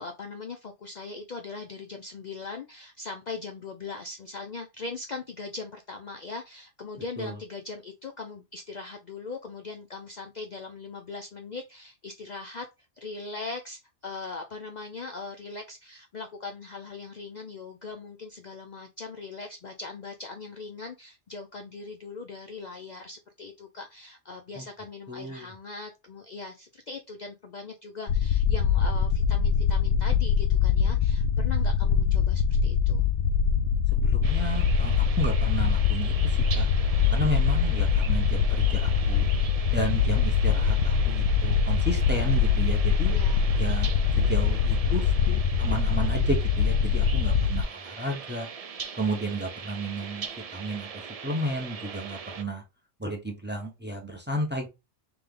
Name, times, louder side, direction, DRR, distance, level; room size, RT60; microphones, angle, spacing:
voice 1, 0.0-12.7 13.0-33.1 43.1-43.4, left 4 dB, 50° left, 0.6 m, -40 dB
voice 2, 25.1-25.5 33.9-36.7 37.1-39.3 39.7-43.1 43.6-43.9 44.2-48.5 48.9-50.3 50.5-50.9 51.2-52.6 53.0-54.7, right 1 dB, 10° right, 0.9 m, -32 dB
sound 1, 28.1-47.6, left 6 dB, 75° left, 0.9 m, -23 dB
sound 2, 34.2-52.4, right 6 dB, 50° right, 0.4 m, -41 dB
3.5 x 3.4 x 3.7 m
omnidirectional pair, 1.2 m